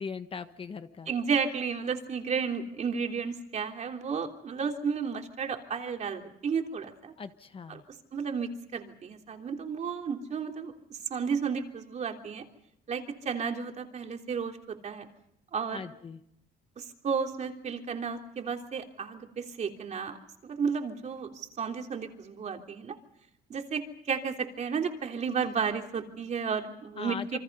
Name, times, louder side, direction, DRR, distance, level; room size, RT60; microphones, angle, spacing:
voice 1, 0.0-1.1 7.2-7.8 15.7-16.2 27.0-27.4, left 5 dB, 30° left, 10 dB, 1.3 m, -39 dB
voice 2, 1.1-7.1 7.7-7.8 8.1-10.7 11.1-12.4 12.9-15.1 15.5-15.9 16.8-20.2 20.4-23.0 23.5-27.4, right 6 dB, 45° right, 3 dB, 3.3 m, -33 dB
28.0 x 24.5 x 5.5 m, 0.79 s
cardioid pair, 110°, 17 cm